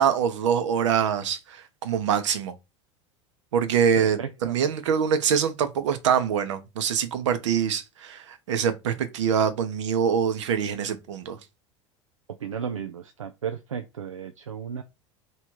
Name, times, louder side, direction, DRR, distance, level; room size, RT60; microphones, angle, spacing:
voice 1, 0.0-2.5 3.5-11.4, right 7 dB, 70° right, 0.8 m, -24 dB
voice 2, 4.0-4.6 12.4-14.8, right 7 dB, 90° right, 0.4 m, -34 dB
3.3 x 3.0 x 4.6 m
hypercardioid pair, 80°, 16 cm